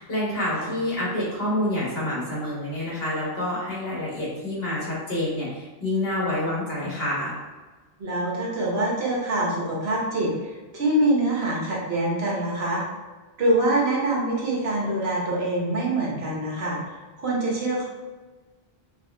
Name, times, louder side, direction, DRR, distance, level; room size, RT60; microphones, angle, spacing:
voice 1, 0.0-7.3, left 1 dB, 70° left, -6 dB, 1.7 m, -27 dB
voice 2, 8.0-10.3 10.7-12.8 13.4-17.9, right 1 dB, 80° right, -4 dB, 1.3 m, -25 dB
3.5 x 3.4 x 3.3 m, 1.3 s
omnidirectional pair, 1.1 m